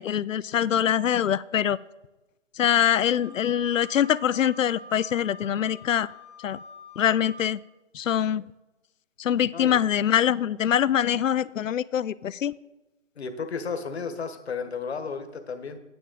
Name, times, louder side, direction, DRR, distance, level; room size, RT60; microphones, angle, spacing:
voice 1, 0.0-1.8 2.6-6.1 6.4-6.6 7.0-7.6 7.9-8.4 9.2-12.5, left 9 dB, 85° left, 19 dB, 0.5 m, -24 dB
Wind instrument woodwind instrument, 3.0-7.5, equal, 35° right, 2.4 m, -46 dB
voice 2, 13.2-15.8, left 5 dB, 55° left, 9 dB, 1.2 m, -33 dB
9.3 x 9.1 x 3.9 m, 1.0 s
figure-of-eight pair, 160°, 38 cm